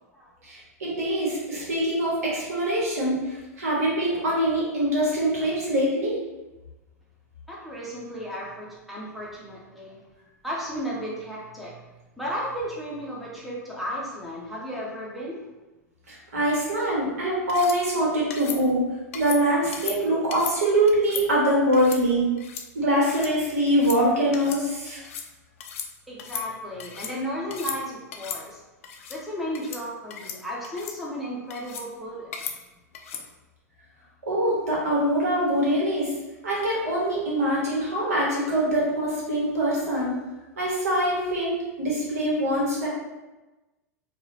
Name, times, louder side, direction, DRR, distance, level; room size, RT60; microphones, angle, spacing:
voice 1, 0.4-6.2 16.1-18.8 19.1-22.3 22.7-25.0 34.2-36.1 36.4-40.1 40.6-42.9, right 1 dB, 65° right, -5 dB, 1.3 m, -24 dB
voice 2, 7.5-10.0 10.4-11.8 12.2-15.5 26.1-28.6 29.1-32.4, equal, ahead, -5 dB, 0.8 m, -34 dB
sound 1, 17.5-17.8 18.3-18.6 19.1-19.4 19.7-20.0 20.3-20.6 20.9-21.2 21.7-22.0 22.4-22.7 23.0-23.3 23.7-24.0 24.3-24.6 24.9-25.3 25.6-25.9 26.2-27.1 27.5-27.8 28.1-28.4 28.8-29.2 29.5-29.8 30.1-30.4 30.6-31.0 31.5-31.9 32.3-32.6 32.9-33.2, left 7 dB, 55° left, 0.4 m, -36 dB
4.7 x 2.3 x 2.8 m, 1.1 s
figure-of-eight pair, 90°, 9 cm